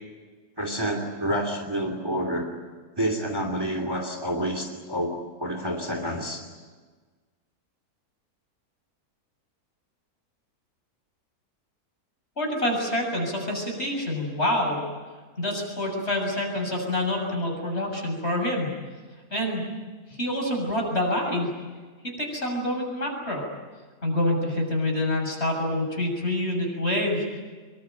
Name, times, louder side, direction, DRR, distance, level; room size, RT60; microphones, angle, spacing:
voice 1, 0.6-2.5 3.0-5.1 5.4-6.4, equal, 15° right, 4 dB, 2.9 m, -28 dB
voice 2, 12.4-14.8 15.4-18.7 19.3-19.7 20.1-21.5 22.2-23.5 24.0-27.4, left 1 dB, 45° left, 1 dB, 7.5 m, -27 dB
25.5 x 23.0 x 9.3 m, 1.4 s
omnidirectional pair, 1.6 m